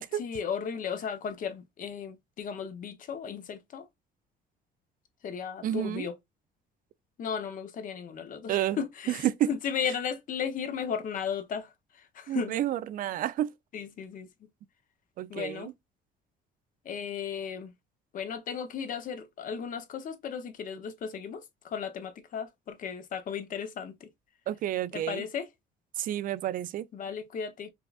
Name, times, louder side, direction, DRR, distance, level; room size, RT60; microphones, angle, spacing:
voice 1, 0.1-3.9 5.2-6.1 7.2-12.6 13.7-14.3 15.3-15.7 16.8-17.7 18.1-24.1 24.9-25.5 26.9-27.7, left 7 dB, 50° left, 0.8 m, -35 dB
voice 2, 5.6-6.1 8.5-8.8 9.1-9.5 12.3-13.5 15.2-15.7 24.5-25.2 26.0-26.9, right 12 dB, 55° right, 0.4 m, -30 dB
5.1 x 2.4 x 2.3 m
cardioid pair, 110°, 17 cm